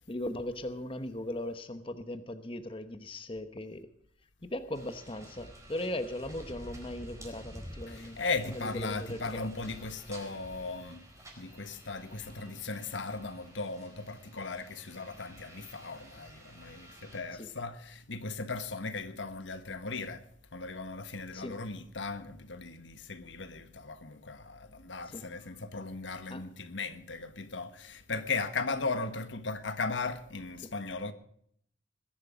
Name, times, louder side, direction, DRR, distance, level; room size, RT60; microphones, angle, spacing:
voice 1, 0.1-3.9 4.4-8.2 8.4-9.5 17.3-17.5 21.3-21.6 25.1-25.3 26.3-26.4 30.6-30.7, left 1 dB, 30° left, 1.0 m, -38 dB
sound 1, 4.7-17.2, equal, 15° right, 4.3 m, -50 dB
voice 2, 7.9-11.1 11.4-20.2 20.5-31.1, left 3 dB, 80° left, 1.4 m, -37 dB
21.0 x 11.0 x 5.1 m
head